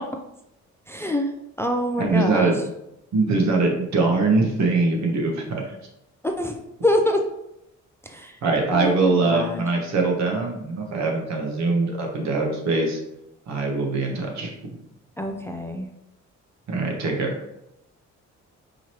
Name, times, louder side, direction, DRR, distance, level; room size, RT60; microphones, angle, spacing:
voice 1, 0.9-1.3 1.6-2.5 6.2-6.6 6.8-7.2 8.1-8.3 8.7-9.7 15.2-15.9, left 1 dB, 10° left, 4 dB, 0.4 m, -25 dB
voice 2, 2.0-2.6 3.1-5.7 8.4-13.0 13.5-14.8 16.7-17.3, right 3 dB, 65° right, 1 dB, 1.1 m, -22 dB
4.8 x 3.0 x 3.0 m, 0.83 s
cardioid pair, 90°, 30 cm